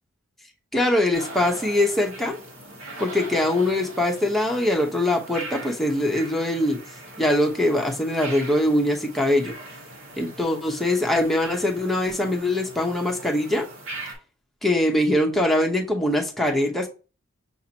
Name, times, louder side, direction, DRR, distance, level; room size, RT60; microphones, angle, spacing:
voice 1, 0.7-2.4 3.0-6.8 7.2-9.5 10.2-13.7 14.6-16.9, left 1 dB, ahead, 0.8 m, -22 dB
sound 1, 1.1-14.1, right 2 dB, 80° right, 1.8 m, -40 dB
5.9 x 2.9 x 2.8 m
head